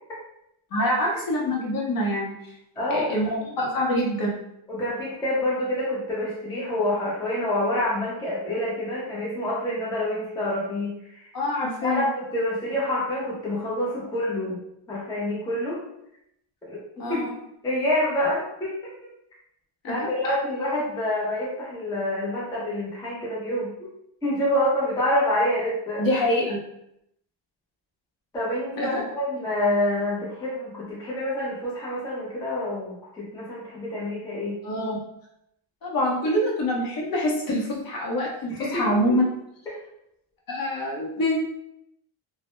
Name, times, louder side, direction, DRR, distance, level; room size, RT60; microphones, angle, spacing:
voice 1, 0.7-2.4 2.9-4.3 11.3-12.1 17.0-17.3 19.8-20.1 26.0-26.6 28.8-29.0 34.6-35.0 35.8-39.3 40.5-41.4, left 1 dB, 45° left, -3 dB, 0.7 m, -25 dB
voice 2, 2.8-3.1 4.7-11.3 11.8-14.6 14.9-15.8 16.7-17.2 17.6-18.9 19.9-23.9 24.2-26.1 28.3-34.6 38.5-39.2, left 1 dB, 10° left, -6 dB, 0.4 m, -27 dB
2.1 x 2.0 x 2.9 m, 0.79 s
cardioid pair, 150°, 49 cm